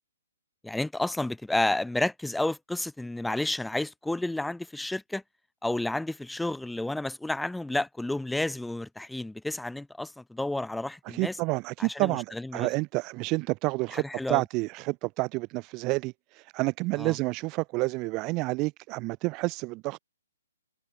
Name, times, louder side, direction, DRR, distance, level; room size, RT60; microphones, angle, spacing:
voice 1, 0.6-5.2 5.6-11.4 11.8-12.7 13.9-14.4 17.0-17.2, left 2 dB, 5° left, 1.1 m, -31 dB
voice 2, 11.1-20.0, right 24 dB, 30° right, 0.5 m, -29 dB
figure-of-eight pair, 125°, 0 cm